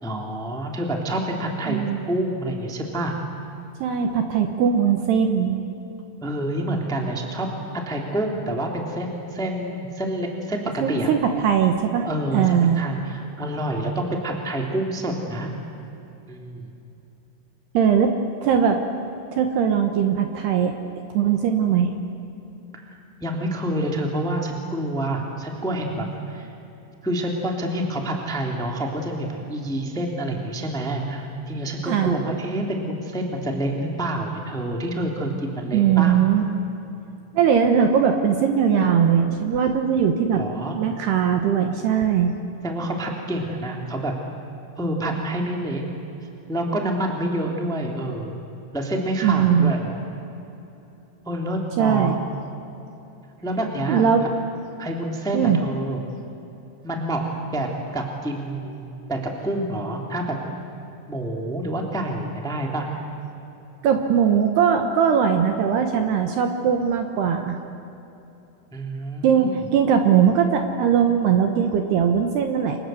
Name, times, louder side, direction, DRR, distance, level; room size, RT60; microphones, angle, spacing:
voice 1, 0.0-3.1 6.2-7.5 7.8-11.1 12.0-15.5 16.3-16.7 22.7-26.5 27.0-36.2 40.3-40.7 42.6-44.1 44.7-45.8 46.5-48.4 48.7-50.0 51.2-52.2 53.4-54.0 54.8-56.0 56.8-57.7 57.9-60.4 61.1-62.9 68.7-69.6, right 1 dB, ahead, 1 dB, 1.6 m, -27 dB
voice 2, 1.7-2.0 3.8-5.6 10.8-12.1 12.3-12.8 17.7-18.1 18.4-18.8 19.3-20.7 21.1-21.9 31.9-32.2 35.7-36.4 37.3-40.4 40.7-42.3 49.2-49.7 51.8-52.2 53.9-54.3 55.3-55.6 63.8-67.6 69.2-72.8, right 8 dB, 70° right, 5 dB, 2.8 m, -20 dB
29.5 x 25.5 x 7.8 m, 2.9 s
omnidirectional pair, 5.8 m